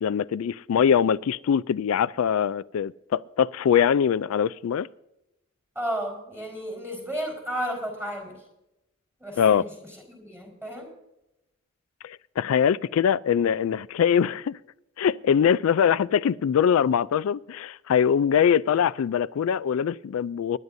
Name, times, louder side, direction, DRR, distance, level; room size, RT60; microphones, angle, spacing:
voice 1, 0.0-4.9 9.4-9.6 12.0-14.6 15.0-20.6, left 8 dB, 80° left, 0.3 m, -23 dB
voice 2, 5.7-8.4 9.2-10.9, equal, 10° right, 4.4 m, -33 dB
24.5 x 11.0 x 2.7 m
head